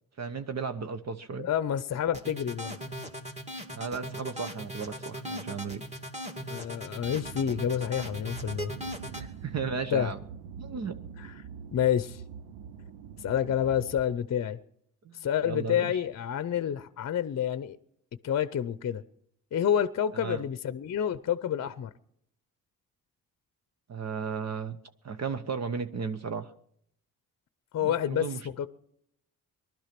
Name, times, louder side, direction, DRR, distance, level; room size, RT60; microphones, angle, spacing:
voice 1, 0.2-1.5 3.7-5.8 9.1-10.2 10.6-10.9 15.0-16.0 20.1-20.4 23.9-24.8 25.0-26.5 27.8-28.5, right 5 dB, 45° right, 1.0 m, -35 dB
voice 2, 1.4-2.8 6.5-8.7 9.9-10.1 11.2-11.3 11.7-12.2 13.2-14.6 15.2-17.8 18.2-19.0 19.5-21.9 27.7-28.7, left 9 dB, 45° left, 0.7 m, -29 dB
sound 1, 2.1-9.2, equal, 20° right, 2.5 m, -38 dB
sound 2, 7.0-14.0, right 7 dB, 90° right, 0.7 m, -44 dB
20.0 x 12.0 x 6.0 m
cardioid pair, 75°, 36 cm